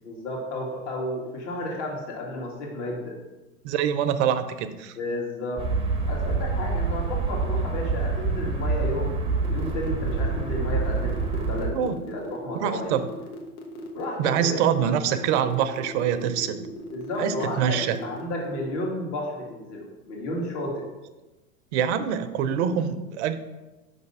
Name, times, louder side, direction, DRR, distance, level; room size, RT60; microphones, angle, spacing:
voice 1, 0.0-3.2 5.0-5.7 6.1-9.1 9.5-13.0 13.9-14.6 16.9-20.8, left 1 dB, 55° left, -2 dB, 1.9 m, -32 dB
voice 2, 3.6-5.0 11.7-12.0 12.6-13.0 14.2-16.7 17.2-18.0 21.7-23.4, right 8 dB, 55° right, 10 dB, 0.6 m, -25 dB
sound 1, 5.6-11.7, right 3 dB, 15° right, 0.6 m, -26 dB
sound 2, 9.4-18.8, left 1 dB, 75° left, 1.2 m, -39 dB
5.5 x 3.4 x 5.4 m, 1.1 s
hypercardioid pair, 100°, 43 cm